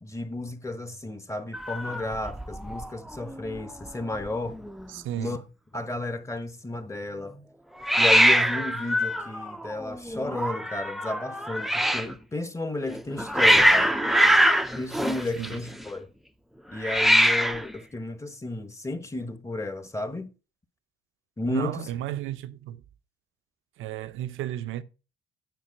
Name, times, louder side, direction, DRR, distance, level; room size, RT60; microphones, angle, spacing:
voice 1, 0.0-4.6 5.2-5.4 5.7-7.4 8.0-14.0 14.7-16.1 16.7-20.3 21.4-21.9, left 2 dB, 15° left, 1.1 m, -33 dB
Hiss, 1.5-2.9 3.1-3.6 3.9-4.0 4.1-4.8 7.8-12.1 12.9-15.8 16.8-17.7, equal, ahead, 0.6 m, -23 dB
voice 2, 4.9-5.4 15.4-15.6 21.5-22.8 23.8-24.8, right 13 dB, 85° right, 0.7 m, -33 dB
9.1 x 5.1 x 5.2 m
cardioid pair, 90°, 20 cm